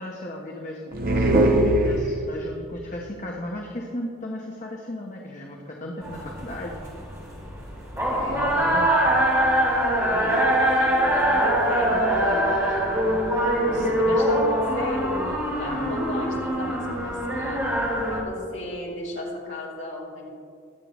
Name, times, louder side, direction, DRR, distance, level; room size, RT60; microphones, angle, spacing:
voice 1, 0.0-6.8 8.3-9.0 13.7-14.4 15.6-16.1, left 1 dB, 35° left, -1 dB, 1.0 m, -35 dB
sound 1, 0.9-2.5, right 1 dB, 45° right, 0.9 m, -21 dB
sound 2, 6.0-18.2, right 1 dB, 15° right, 2.2 m, -23 dB
voice 2, 7.9-8.5 9.8-17.6 18.0-20.3, left 1 dB, 60° left, -5 dB, 2.8 m, -34 dB
21.0 x 7.7 x 3.1 m, 2.5 s
head